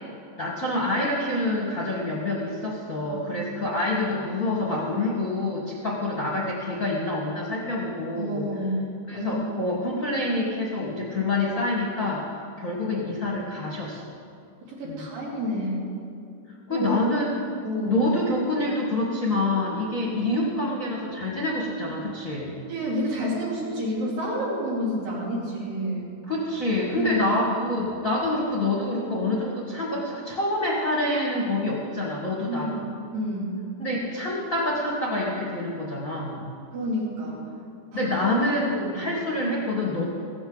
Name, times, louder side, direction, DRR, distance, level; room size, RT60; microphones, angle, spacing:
voice 1, 0.4-8.5 9.1-12.3 12.6-14.0 14.8-15.1 16.7-17.4 17.9-22.6 26.3-32.8 33.8-36.5 37.9-40.0, left 2 dB, 35° left, -4 dB, 1.3 m, -27 dB
voice 2, 3.0-3.5 8.1-8.8 9.1-9.5 14.8-15.8 16.7-16.9 17.6-18.1 22.7-26.1 26.9-27.4 32.5-33.6 36.7-37.4 37.9-38.1 38.7-39.0, equal, 85° right, -5 dB, 4.8 m, -29 dB
16.0 x 14.0 x 3.9 m, 2.5 s
omnidirectional pair, 3.8 m